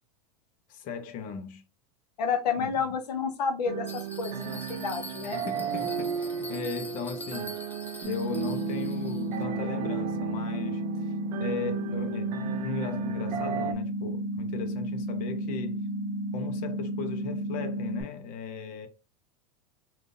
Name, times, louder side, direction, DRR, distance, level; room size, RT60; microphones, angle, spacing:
voice 1, 0.7-1.6 2.6-2.8 5.4-7.6 8.0-11.1 11.4-15.8 16.3-18.9, left 5 dB, 45° left, 0.8 m, -37 dB
voice 2, 2.2-5.4, left 6 dB, 90° left, 0.8 m, -30 dB
sound 1, 3.6-13.7, right 9 dB, 80° right, 0.5 m, -35 dB
Bell, 3.9-9.4, left 3 dB, 10° left, 0.4 m, -45 dB
sound 2, 8.0-18.0, equal, 50° right, 0.7 m, -32 dB
3.5 x 2.5 x 2.6 m
hypercardioid pair, 115°, 20 cm